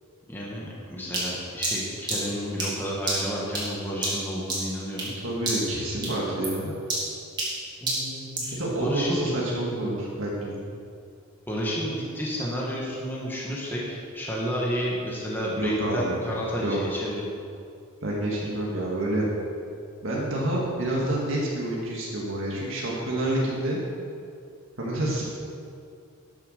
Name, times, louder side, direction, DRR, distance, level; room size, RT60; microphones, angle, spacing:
voice 1, 0.3-5.1 7.8-9.3 11.5-17.2, equal, 10° left, -5 dB, 1.7 m, -31 dB
sound 1, 1.1-5.2 5.4-5.8 6.0-8.6, right 2 dB, 20° right, 2.9 m, -30 dB
voice 2, 5.2-6.7 8.5-10.6 15.6-16.2 16.6-16.8 18.0-19.3 20.0-23.8 24.8-25.2, right 1 dB, 65° right, -4 dB, 2.1 m, -28 dB
12.0 x 7.3 x 6.6 m, 2.4 s
head